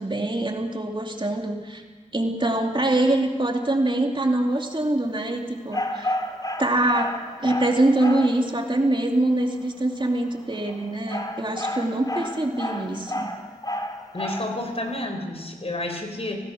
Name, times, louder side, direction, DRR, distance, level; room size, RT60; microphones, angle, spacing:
voice 1, 0.0-1.8 2.1-6.2 6.6-13.3, right 1 dB, 40° right, 2 dB, 2.7 m, -24 dB
sound 1, 5.7-8.4 10.5-14.5, left 1 dB, 30° left, 2.9 m, -30 dB
voice 2, 14.1-16.4, left 1 dB, 50° left, 4 dB, 4.3 m, -30 dB
27.0 x 18.0 x 6.5 m, 1.4 s
wide cardioid pair, 55°, 13 cm